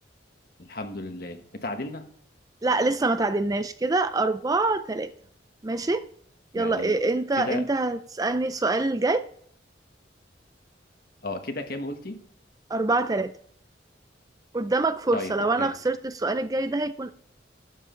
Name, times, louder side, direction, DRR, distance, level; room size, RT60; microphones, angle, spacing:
voice 1, 0.6-2.1 6.5-7.0 7.4-7.6 11.2-12.2 15.1-15.7, left 2 dB, 55° left, 6 dB, 1.4 m, -34 dB
voice 2, 2.6-5.1 5.6-6.1 6.5-9.3 12.7-13.3 14.5-17.1, right 2 dB, 20° right, 12 dB, 0.4 m, -25 dB
12.5 x 8.2 x 3.9 m, 0.63 s
head